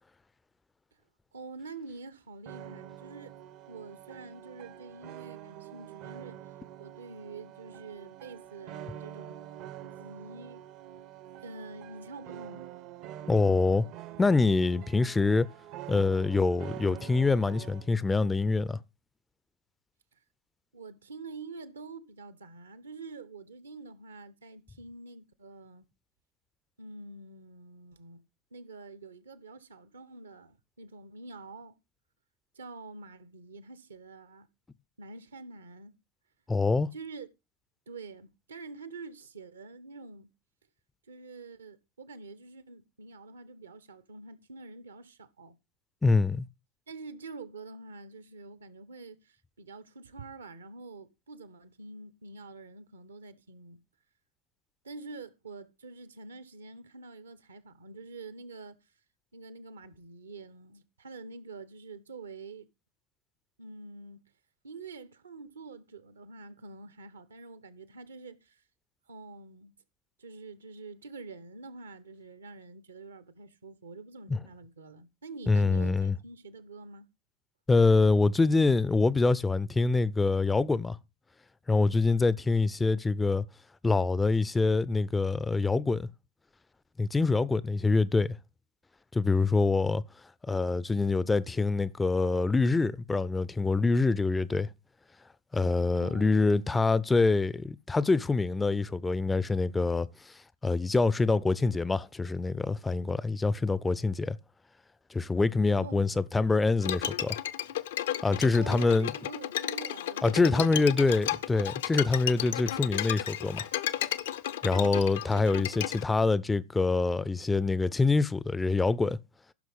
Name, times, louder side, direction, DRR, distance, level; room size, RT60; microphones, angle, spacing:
voice 1, 1.3-3.3 3.7-6.5 6.8-9.4 9.8-10.7 11.4-12.6 20.7-25.8 26.8-28.3 28.5-31.8 32.5-34.5 35.0-36.0 36.9-37.3 37.9-40.3 41.1-45.6 46.9-53.8 54.8-58.8 59.3-62.7 63.6-64.2 64.6-68.6 69.1-69.7 70.2-77.1 96.0-96.8 105.8-106.2 108.5-111.2 112.2-112.8, right 3 dB, 75° right, 0.8 m, -46 dB
sound 1, 2.5-17.9, right 12 dB, 45° right, 0.6 m, -46 dB
voice 2, 13.3-13.9 14.2-15.5 15.9-18.8 36.5-36.9 46.0-46.5 74.3-74.4 75.5-76.2 77.7-81.0 81.7-83.4 83.8-86.1 87.0-88.4 89.1-90.0 90.5-94.7 95.5-100.3 100.6-104.4 105.1-107.4 108.2-109.1 110.2-113.7 114.6-119.2, left 3 dB, 10° left, 0.4 m, -25 dB
Bowed string instrument, 106.8-116.0, left 12 dB, 60° left, 0.5 m, -33 dB
15.0 x 6.0 x 3.5 m
figure-of-eight pair, 85°, 0 cm